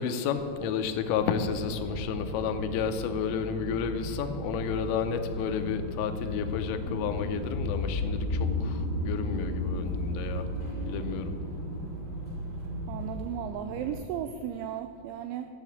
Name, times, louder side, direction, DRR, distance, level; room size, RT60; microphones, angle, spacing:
voice 1, 0.0-10.5 10.9-11.3, left 7 dB, 85° left, 8 dB, 3.3 m, -31 dB
sound 1, 0.5-14.0, equal, 70° right, 3.5 m, -44 dB
sound 2, 1.2-13.1, right 1 dB, 50° right, 2.3 m, -39 dB
sound 3, 4.4-13.3, left 2 dB, 45° left, 0.5 m, -34 dB
voice 2, 12.9-15.5, right 9 dB, 90° right, 8 dB, 2.7 m, -35 dB
14.0 x 6.5 x 8.5 m, 2.3 s
omnidirectional pair, 5.9 m